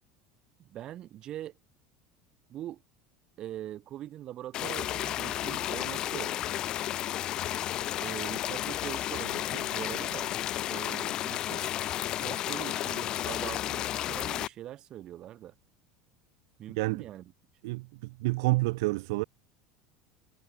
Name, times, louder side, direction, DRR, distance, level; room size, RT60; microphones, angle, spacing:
voice 1, 0.6-1.5 2.5-2.8 3.4-6.4 8.0-10.3 10.7-11.8 12.2-15.5 16.6-17.3 17.6-17.8, right 12 dB, 35° right, 1.5 m, -42 dB
sound 1, 4.5-14.5, left 13 dB, 35° left, 0.3 m, -32 dB
voice 2, 16.7-17.1 17.6-19.2, right 23 dB, 75° right, 1.2 m, -29 dB
cardioid pair, 155°, 2 cm